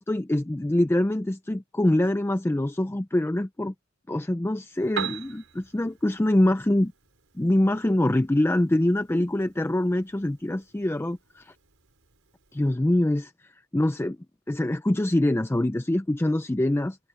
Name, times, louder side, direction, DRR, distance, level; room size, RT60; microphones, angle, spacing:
voice 1, 0.1-3.7 4.1-6.9 7.3-11.5 12.5-14.2 14.5-17.0, left 1 dB, 10° left, 0.4 m, -24 dB
Piano, 4.7-12.7, right 6 dB, 75° right, 5.9 m, -42 dB
head